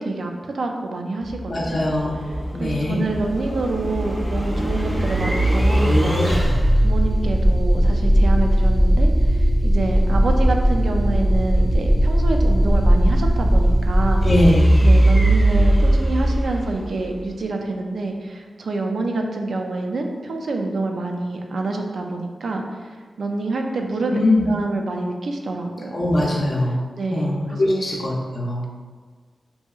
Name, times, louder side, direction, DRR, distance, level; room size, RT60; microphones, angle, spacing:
voice 1, 0.0-1.8 2.6-6.6 6.8-14.2 14.8-22.9 23.2-24.2 24.5-26.0 27.0-27.9, right 2 dB, 75° right, 3 dB, 0.3 m, -27 dB
sound 1, 1.2-17.2, equal, 5° right, 0.5 m, -18 dB
voice 2, 1.5-2.3 2.5-3.0 14.2-14.7 24.1-24.5 25.9-26.8 27.1-28.7, left 1 dB, 50° left, -4 dB, 0.5 m, -21 dB
2.7 x 2.6 x 2.3 m, 1.5 s
wide cardioid pair, 85°, 0 cm